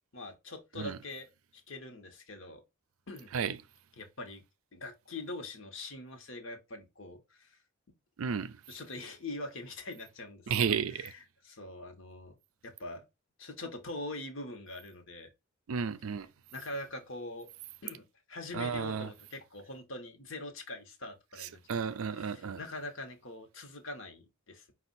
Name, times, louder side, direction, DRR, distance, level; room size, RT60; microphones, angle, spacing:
voice 1, 0.1-1.3 1.5-2.6 3.1-3.3 4.0-4.4 4.7-7.6 8.7-11.1 11.4-12.4 12.6-13.0 13.4-15.3 16.5-17.5 17.8-21.6 21.9-24.7, left 2 dB, 60° left, 1.1 m, -43 dB
voice 2, 8.2-8.6 10.5-11.1 15.7-16.3 18.5-19.1 21.4-22.6, right 6 dB, 75° right, 0.4 m, -33 dB
5.4 x 2.4 x 4.1 m
head